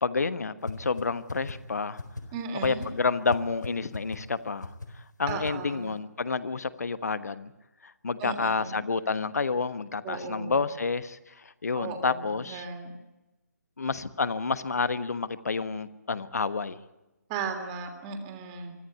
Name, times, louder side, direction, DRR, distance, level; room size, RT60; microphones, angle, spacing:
voice 1, 0.0-2.0 2.6-7.5 7.8-12.6 13.8-16.8, left 4 dB, 60° left, 14 dB, 1.3 m, -29 dB
sound 1, 0.7-0.8 1.0-1.1 1.3-1.5 2.0-2.2 2.6-2.9 3.3-3.4 3.6-3.7 3.9-4.2 4.6-4.9 5.3-5.5, left 3 dB, 90° left, 4.0 m, -35 dB
voice 2, 2.3-2.9 5.3-5.9 8.2-8.8 10.0-10.6 11.8-12.9 17.3-18.8, right 5 dB, 20° right, 5 dB, 3.0 m, -36 dB
24.5 x 14.5 x 9.4 m, 1.0 s
figure-of-eight pair, 145°, 9 cm